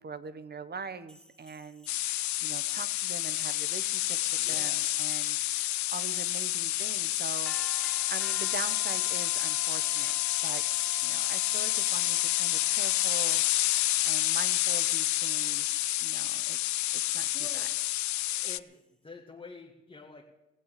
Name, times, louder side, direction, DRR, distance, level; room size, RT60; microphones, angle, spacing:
voice 1, 0.0-4.2 4.5-7.5 8.1-10.1 10.4-15.7 16.0-16.6 16.9-17.3 17.5-17.7, right 5 dB, 35° right, 13 dB, 1.1 m, -43 dB
sound 1, 1.1-18.8, left 1 dB, ahead, 0.9 m, -52 dB
sound 2, 1.9-18.6, left 16 dB, 70° left, 0.5 m, -29 dB
voice 2, 4.4-5.1 17.3-17.9 18.2-20.3, left 3 dB, 15° left, -1 dB, 1.8 m, -49 dB
18.5 x 8.0 x 7.6 m, 0.98 s
cardioid pair, 90°, 30 cm